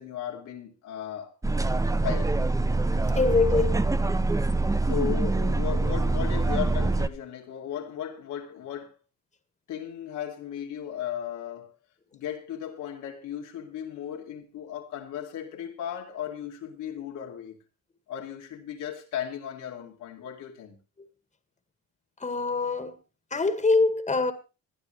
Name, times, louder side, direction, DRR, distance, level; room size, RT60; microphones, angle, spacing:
voice 1, 0.0-1.3 1.9-2.4 4.8-9.0 9.7-11.8 12.1-17.6 18.1-20.8, left 9 dB, 90° left, 2.6 m, -36 dB
sound 1, 1.4-7.1, right 2 dB, 10° right, 0.8 m, -25 dB
voice 2, 3.1-3.8 22.2-23.0 23.3-24.3, left 3 dB, 25° left, 2.0 m, -24 dB
20.5 x 11.5 x 3.3 m
cardioid pair, 90°, 30 cm